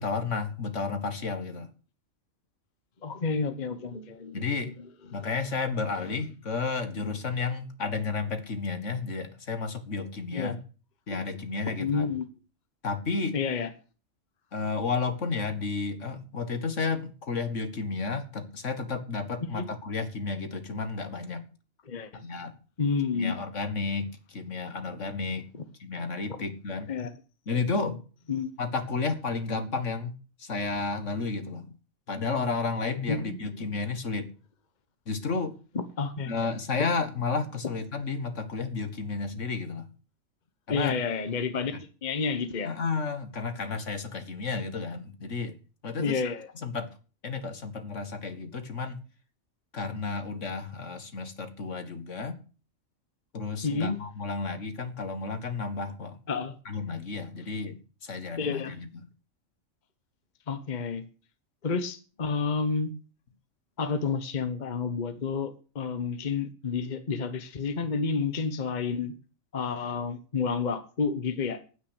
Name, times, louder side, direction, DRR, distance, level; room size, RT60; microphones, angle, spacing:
voice 1, 0.0-1.7 4.3-4.7 5.1-10.6 11.1-12.1 12.8-13.4 14.5-21.4 22.2-22.5 23.1-25.5 25.8-26.9 27.5-28.0 28.6-31.7 32.1-34.3 35.1-35.5 36.3-39.9 40.7-41.0 42.6-45.5 45.8-46.2 46.6-46.9 47.2-49.0 49.7-52.4 53.3-56.2 56.7-58.9, left 4 dB, 60° left, 2.0 m, -32 dB
voice 2, 3.0-4.7 5.1-5.3 6.0-6.2 10.3-10.6 11.7-12.2 13.3-13.7 19.4-19.7 21.9-22.2 22.8-23.3 25.5-25.6 26.9-27.1 28.3-28.5 33.1-33.7 35.7-36.3 40.7-42.7 46.0-46.5 53.6-54.0 56.3-56.5 58.4-58.8 60.5-61.1 61.6-62.9 63.8-69.1 69.5-71.6, left 5 dB, 35° left, 1.1 m, -30 dB
9.7 x 9.6 x 8.1 m
omnidirectional pair, 1.4 m